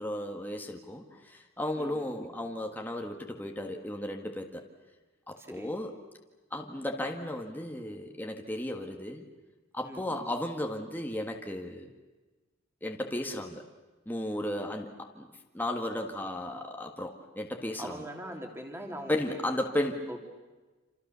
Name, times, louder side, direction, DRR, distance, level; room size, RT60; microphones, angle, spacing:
voice 1, 0.0-4.6 5.3-5.9 6.5-9.2 9.7-11.9 12.8-13.6 14.0-15.3 15.5-18.0 19.1-20.2, left 1 dB, 10° left, 2 dB, 1.7 m, -34 dB
voice 2, 5.4-5.7 9.8-10.3 17.8-19.4 20.1-20.2, equal, 10° right, 2 dB, 3.4 m, -42 dB
28.0 x 27.5 x 6.9 m, 1.2 s
head